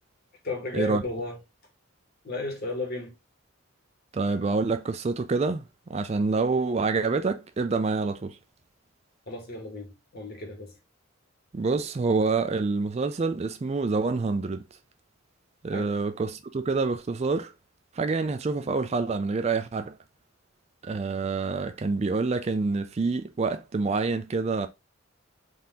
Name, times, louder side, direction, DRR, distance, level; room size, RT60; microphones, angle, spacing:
voice 1, 0.4-1.4 2.2-3.1 9.3-10.8 15.7-15.9, left 2 dB, 50° left, 1.5 m, -34 dB
voice 2, 4.1-5.6 5.9-8.4 11.5-14.6 15.6-17.5 17.9-20.0 20.8-24.7, right 4 dB, 30° right, 0.3 m, -27 dB
4.0 x 2.8 x 3.5 m
head